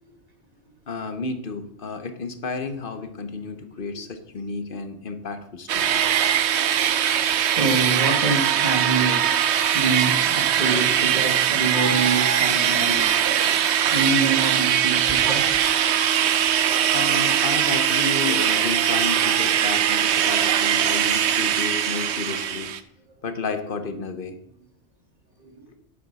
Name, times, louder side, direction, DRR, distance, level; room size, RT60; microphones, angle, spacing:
voice 1, 0.9-6.1 16.9-22.7 23.2-24.4, left 4 dB, 50° left, 9 dB, 0.9 m, -32 dB
sound 1, 5.7-22.8, right 9 dB, 65° right, 0.9 m, -21 dB
voice 2, 7.5-9.3 9.7-13.4 13.9-15.5 25.4-25.6, right 4 dB, 35° right, 2 dB, 1.7 m, -26 dB
10.0 x 7.8 x 4.1 m, 0.72 s
omnidirectional pair, 1.3 m